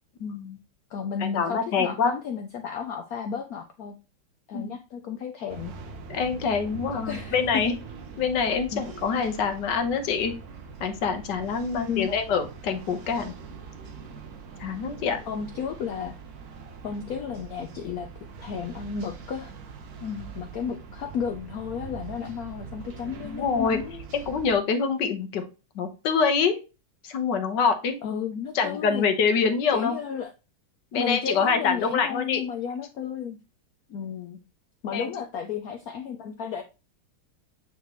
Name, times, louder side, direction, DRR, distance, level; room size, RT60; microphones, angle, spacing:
voice 1, 0.2-0.6 1.2-2.1 4.5-4.7 6.1-7.7 8.2-10.3 10.8-13.3 14.6-15.2 20.0-20.3 23.2-23.8 24.1-25.4 25.7-26.6 27.0-28.0 28.5-29.9 30.9-32.4 34.9-35.1, left 5 dB, 60° left, 7 dB, 1.4 m, -25 dB
voice 2, 0.9-4.0 4.5-5.7 6.9-7.6 8.7-8.8 11.7-12.1 15.3-16.1 16.8-18.1 18.4-19.5 20.3-24.1 28.0-29.1 29.7-30.3 30.9-33.4 33.9-34.4 34.8-36.6, left 7 dB, 80° left, 6 dB, 0.8 m, -33 dB
sound 1, 5.5-24.6, right 5 dB, 55° right, 1.2 m, -42 dB
9.1 x 3.6 x 3.0 m, 0.30 s
omnidirectional pair, 2.3 m